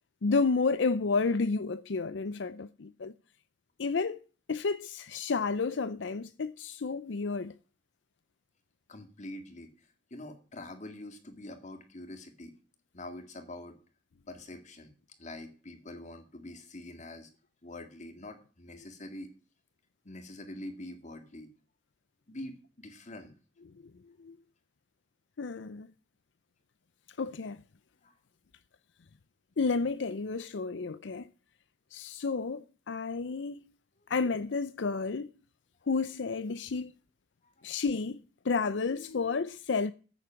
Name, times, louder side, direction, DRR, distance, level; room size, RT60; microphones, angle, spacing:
voice 1, 0.2-3.1 3.8-4.2 4.5-7.5 24.2-24.4 25.4-25.9 27.2-27.6 29.6-31.3 31.9-33.6 34.1-35.3 35.9-36.9 37.6-39.9, left 4 dB, 85° left, 0.6 m, -31 dB
voice 2, 8.9-12.6 12.9-13.8 14.3-14.9 15.2-17.3 17.6-19.3 20.0-21.5 22.3-23.3 28.0-28.1 37.4-37.7, left 1 dB, 40° left, 2.2 m, -45 dB
14.5 x 8.4 x 5.9 m
head